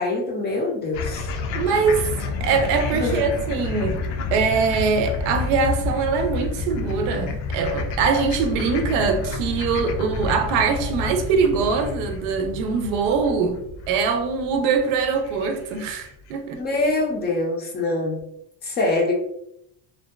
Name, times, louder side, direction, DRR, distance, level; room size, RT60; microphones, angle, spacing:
voice 1, 0.0-1.3 2.9-3.2 16.6-18.2 18.6-19.1, left 2 dB, 25° left, 0.4 m, -24 dB
sound 1, 0.9-16.3, left 3 dB, 75° left, 0.5 m, -30 dB
voice 2, 1.5-2.1 2.4-4.0 4.3-13.6 13.9-16.6, right 5 dB, 80° right, 0.5 m, -22 dB
2.6 x 2.2 x 2.2 m
cardioid pair, 135°, 38 cm